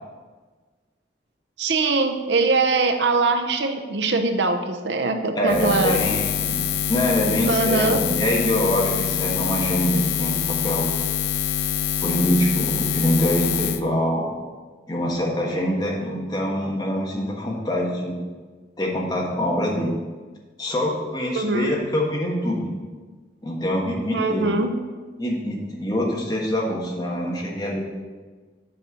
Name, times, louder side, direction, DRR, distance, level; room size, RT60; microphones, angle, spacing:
voice 1, 1.6-6.0 7.5-8.0 21.3-21.7 24.1-24.8, right 3 dB, 80° right, 7 dB, 0.7 m, -22 dB
voice 2, 5.4-6.6 6.9-10.9 12.0-14.3 14.9-18.2 18.8-19.9 20.6-22.7 23.4-24.5 25.2-27.8, equal, 20° left, -2 dB, 1.3 m, -24 dB
Buzz, 5.5-13.8, left 9 dB, 75° left, 0.4 m, -25 dB
7.8 x 4.4 x 6.3 m, 1.4 s
head